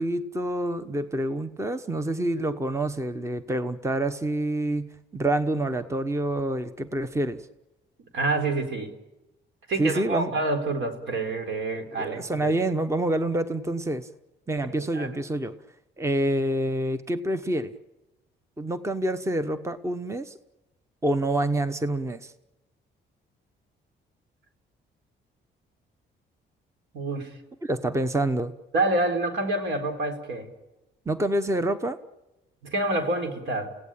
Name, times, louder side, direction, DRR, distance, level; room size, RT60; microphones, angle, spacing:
voice 1, 0.0-7.5 9.8-10.3 12.0-14.1 14.5-15.5 16.0-17.7 18.6-20.4 21.0-22.3 27.6-28.5 31.1-32.0, right 1 dB, 15° right, 11 dB, 1.1 m, -27 dB
voice 2, 8.1-8.9 9.7-12.5 14.6-15.1 26.9-27.4 28.7-30.5 32.6-33.8, right 2 dB, 75° right, 6 dB, 4.0 m, -27 dB
30.0 x 17.0 x 8.9 m, 1.0 s
cardioid pair, 90°, 20 cm